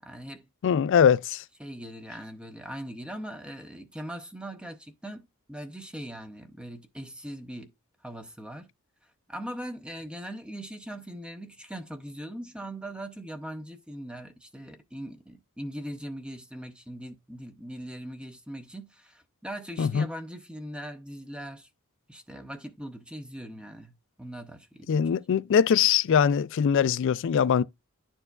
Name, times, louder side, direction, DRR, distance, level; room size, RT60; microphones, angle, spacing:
voice 1, 0.0-0.5 1.6-7.7 8.0-8.7 9.0-21.7 22.1-25.4, right 1 dB, 5° right, 0.5 m, -40 dB
voice 2, 0.6-1.4 19.8-20.0 24.9-27.6, left 7 dB, 60° left, 0.3 m, -22 dB
11.0 x 4.5 x 2.3 m
head